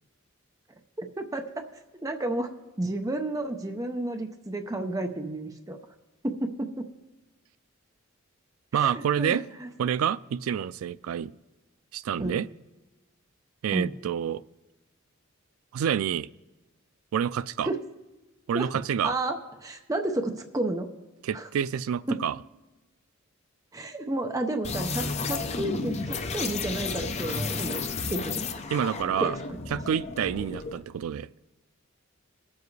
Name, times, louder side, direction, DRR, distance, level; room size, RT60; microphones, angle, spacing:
voice 1, 1.0-1.7 2.0-5.8 6.2-6.9 8.7-9.7 12.2-12.4 13.7-13.9 17.6-17.8 18.5-18.7 19.0-20.9 21.3-21.5 22.1-22.2 23.7-27.8 28.1-28.4 29.2-29.4, right 2 dB, 15° right, 5 dB, 0.6 m, -31 dB
voice 2, 8.7-9.4 9.8-11.3 11.9-12.5 13.6-14.4 15.7-16.3 17.1-17.7 18.5-19.1 21.2-22.4 28.7-29.4 29.7-31.3, right 8 dB, 85° right, 17 dB, 0.3 m, -28 dB
sound 1, 24.6-30.8, left 4 dB, 30° left, 0.6 m, -32 dB
21.0 x 7.1 x 3.2 m, 1.1 s
head